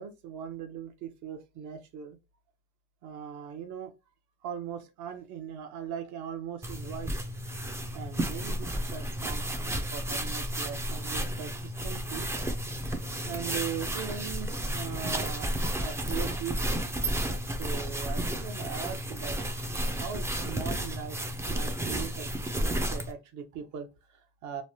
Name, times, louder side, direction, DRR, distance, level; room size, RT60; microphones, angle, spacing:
voice 1, 0.0-2.2 3.0-3.9 4.4-7.2 7.9-12.3 13.3-15.5 15.8-16.9 17.6-19.4 20.0-21.2 21.5-24.6, right 8 dB, 55° right, 0.8 m, -40 dB
sound 1, 6.6-23.1, right 1 dB, 10° right, 0.3 m, -32 dB
3.2 x 2.0 x 2.7 m
cardioid pair, 120°, 35 cm